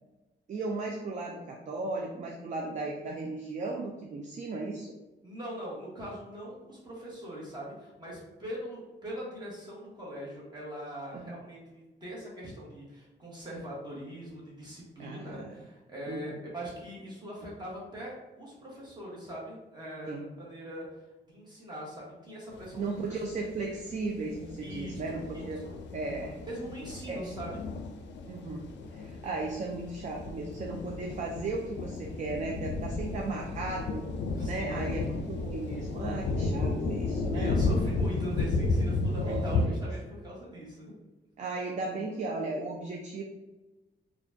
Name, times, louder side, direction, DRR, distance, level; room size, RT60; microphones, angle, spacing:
voice 1, 0.5-4.9 11.1-11.3 15.0-15.5 16.1-16.4 20.0-20.3 22.7-25.6 25.9-26.4 27.1-27.3 28.3-28.6 28.9-34.0 34.4-37.5 39.2-39.8 41.4-43.2, right 3 dB, 40° right, 0 dB, 0.4 m, -36 dB
voice 2, 5.2-20.8 21.3-22.8 24.6-25.0 25.6-25.8 26.5-27.6 34.3-34.9 37.3-40.9, equal, 25° right, -6 dB, 1.3 m, -41 dB
sound 1, 22.5-22.7 23.0-39.7, left 3 dB, 75° left, 0.4 m, -33 dB
4.2 x 2.3 x 2.6 m, 1.1 s
wide cardioid pair, 145°, 19 cm